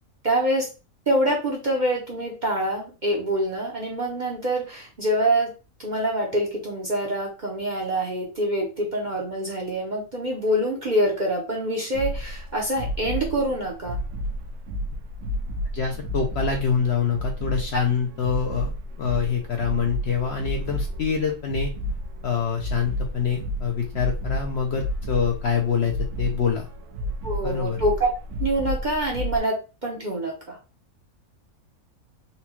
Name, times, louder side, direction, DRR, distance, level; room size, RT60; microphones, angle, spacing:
voice 1, 0.2-0.7 1.1-5.5 5.8-14.0 27.2-28.1 28.4-30.6, right 1 dB, 40° right, -1 dB, 0.7 m, -25 dB
sound 1, 11.9-29.4, equal, 85° right, 1.1 m, -31 dB
voice 2, 15.7-18.7 19.0-21.7 22.2-26.7 27.4-27.8, left 6 dB, 60° left, 2 dB, 0.7 m, -25 dB
4.1 x 2.2 x 2.9 m, 0.31 s
omnidirectional pair, 1.6 m